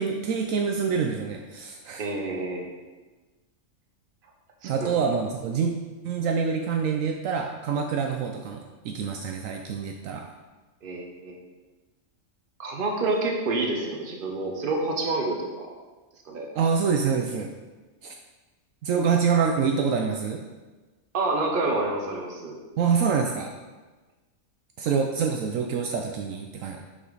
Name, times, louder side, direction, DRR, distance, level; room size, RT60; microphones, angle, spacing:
voice 1, 0.0-2.0 4.6-5.7 6.0-10.2 16.5-17.5 18.0-18.1 18.8-20.4 22.8-23.5 24.8-26.8, right 6 dB, 75° right, 3 dB, 0.9 m, -26 dB
voice 2, 2.0-2.6 4.6-4.9 10.8-11.4 12.6-15.7 16.2-16.5 21.1-22.5, right 2 dB, 45° right, 1 dB, 1.1 m, -28 dB
6.1 x 5.5 x 4.0 m, 1.2 s
omnidirectional pair, 1.4 m